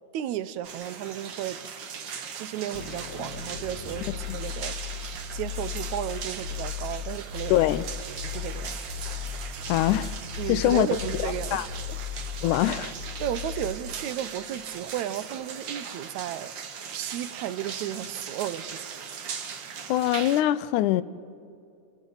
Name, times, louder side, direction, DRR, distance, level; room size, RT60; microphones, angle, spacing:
voice 1, 0.1-1.6 2.3-4.8 5.3-7.6 8.2-8.8 10.4-12.0 13.2-16.5 16.9-18.9, right 11 dB, 80° right, 2.0 m, -33 dB
sound 1, 0.6-20.4, right 6 dB, 60° right, 1.2 m, -39 dB
sound 2, 2.7-14.2, left 9 dB, 55° left, 1.3 m, -36 dB
voice 2, 7.5-7.8 9.7-10.1 10.5-10.9 11.2-11.7 12.4-12.9 19.9-21.0, left 13 dB, 90° left, 2.1 m, -23 dB
28.5 x 28.5 x 4.0 m
omnidirectional pair, 3.4 m